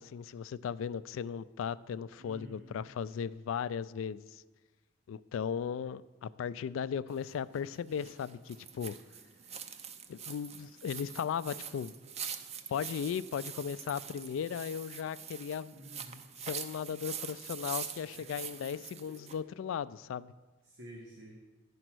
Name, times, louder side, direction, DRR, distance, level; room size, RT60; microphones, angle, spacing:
voice 1, 0.0-4.4 5.1-9.0 10.1-12.0 12.7-15.8 16.4-20.3, left 7 dB, 85° left, 18 dB, 0.3 m, -37 dB
voice 2, 2.2-2.9 15.7-16.2 18.1-18.4 19.1-19.5 20.6-21.4, equal, 85° right, -1 dB, 1.2 m, -51 dB
sound 1, 7.1-19.4, right 7 dB, 35° right, 0.5 m, -44 dB
9.9 x 5.1 x 6.1 m, 1.2 s
head